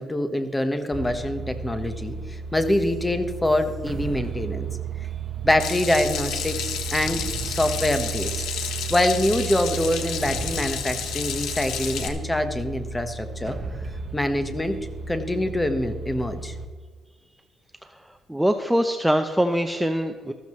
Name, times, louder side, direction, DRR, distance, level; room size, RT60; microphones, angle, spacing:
voice 1, 0.0-4.7 5.4-8.4 8.9-13.6 14.1-14.8 15.1-16.6, left 1 dB, 15° left, 8 dB, 1.3 m, -25 dB
sound 1, 0.9-16.7, right 6 dB, 40° right, 1.3 m, -34 dB
Water tap faucet / Sink (filling or washing), 5.6-12.1, left 8 dB, 90° left, 1.4 m, -31 dB
voice 2, 18.3-20.3, equal, 5° right, 6 dB, 0.7 m, -23 dB
14.5 x 13.5 x 3.2 m, 1.5 s
cardioid pair, 90°, 0 cm